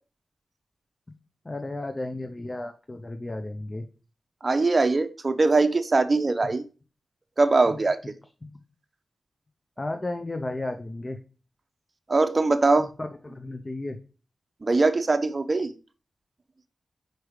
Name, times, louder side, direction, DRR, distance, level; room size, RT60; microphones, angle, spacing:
voice 1, 1.4-3.9 7.7-7.8 8.4-8.6 9.8-11.2 12.8-14.0, left 2 dB, 30° left, 6 dB, 0.7 m, -34 dB
voice 2, 4.4-6.7 7.4-8.0 12.1-12.9 14.6-15.7, right 3 dB, 40° right, 9 dB, 0.7 m, -22 dB
4.8 x 4.7 x 4.9 m, 0.35 s
cardioid pair, 70°, 0 cm